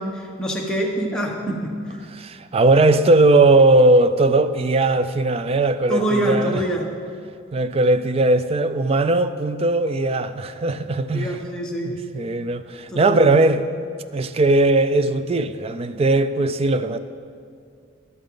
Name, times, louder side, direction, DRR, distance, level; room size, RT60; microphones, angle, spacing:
voice 1, 0.0-1.7 5.9-6.9 11.1-12.0 12.9-13.4, right 1 dB, 5° left, 1.3 m, -25 dB
voice 2, 2.1-6.6 7.5-11.4 11.8-13.7 14.1-17.0, right 2 dB, 30° right, 0.4 m, -18 dB
13.0 x 11.0 x 3.9 m
head